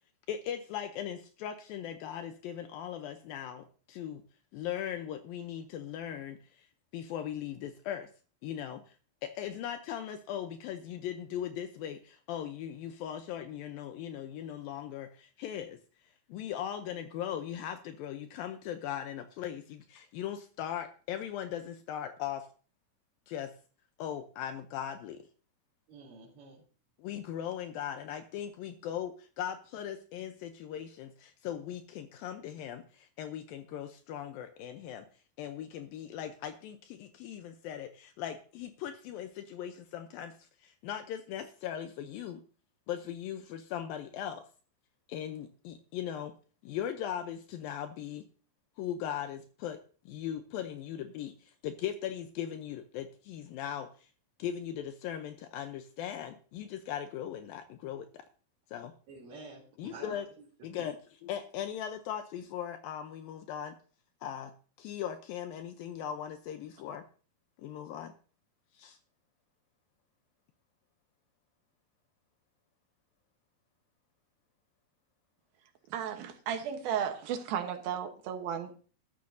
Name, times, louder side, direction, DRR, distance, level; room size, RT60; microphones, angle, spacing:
voice 1, 0.3-4.2 4.5-6.7 6.9-8.1 8.4-8.9 9.2-15.8 16.3-22.5 23.3-23.5 24.0-25.2 27.0-35.1 35.4-40.4 40.6-42.4 42.9-44.5 45.1-46.3 46.6-48.3 48.8-49.8 50.1-54.1 54.4-58.2 58.7-58.9 59.8-60.3 60.6-61.0 61.2-63.7 64.2-64.5 64.8-67.0 67.6-68.1 68.8-69.0, left 10 dB, 80° left, 7 dB, 2.4 m, -39 dB
voice 2, 25.9-26.6 59.1-60.5 60.7-60.8, right 3 dB, 50° right, -8 dB, 4.2 m, -49 dB
voice 3, 75.9-78.7, right 8 dB, 75° right, 6 dB, 2.9 m, -34 dB
13.0 x 13.0 x 2.7 m, 0.40 s
omnidirectional pair, 4.4 m